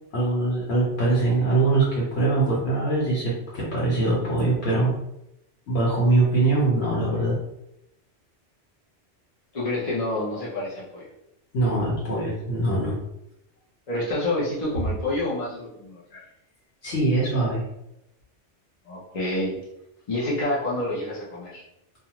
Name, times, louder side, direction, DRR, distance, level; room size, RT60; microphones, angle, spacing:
voice 1, 0.1-4.9 5.7-7.4 11.5-13.0 16.8-17.6, right 2 dB, 70° left, -6 dB, 1.1 m, -22 dB
voice 2, 9.5-11.1 13.9-16.2 18.9-19.6 20.1-21.6, left 1 dB, 40° left, -7 dB, 0.6 m, -28 dB
2.4 x 2.4 x 2.8 m, 0.83 s
omnidirectional pair, 1.2 m